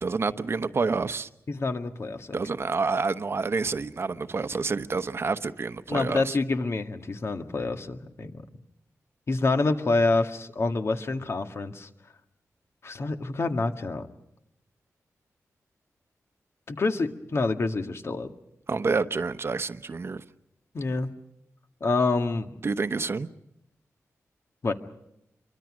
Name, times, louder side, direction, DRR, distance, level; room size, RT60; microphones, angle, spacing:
voice 1, 0.0-1.3 2.3-6.4 18.7-20.2 22.6-23.3, right 4 dB, 50° right, 1.0 m, -28 dB
voice 2, 1.5-2.4 5.9-8.3 9.3-11.9 12.8-14.1 16.7-18.3 20.7-21.1 21.8-22.5 24.6-24.7, left 3 dB, 50° left, 1.8 m, -27 dB
25.5 x 24.0 x 6.3 m
wide cardioid pair, 100°, 6 cm